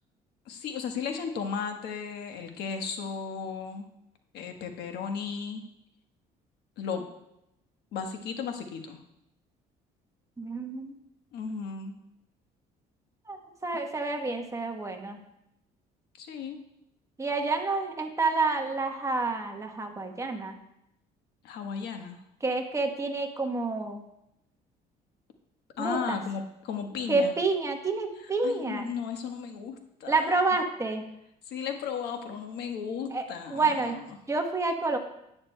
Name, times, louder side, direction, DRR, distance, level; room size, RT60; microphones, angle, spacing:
voice 1, 0.5-3.9 4.3-5.6 6.8-7.0 7.9-9.0 11.3-12.0 16.2-16.6 21.4-22.2 25.8-27.3 28.4-30.4 31.4-34.2, left 6 dB, 80° left, 5 dB, 1.2 m, -35 dB
voice 2, 10.4-10.9 13.3-13.4 13.6-15.2 17.2-20.6 22.4-24.0 25.8-26.2 27.1-28.9 30.1-31.1 33.1-33.2 33.5-34.0 34.3-35.0, right 3 dB, 20° right, 4 dB, 1.0 m, -28 dB
11.5 x 9.5 x 2.2 m, 0.83 s
cardioid pair, 110°, 17 cm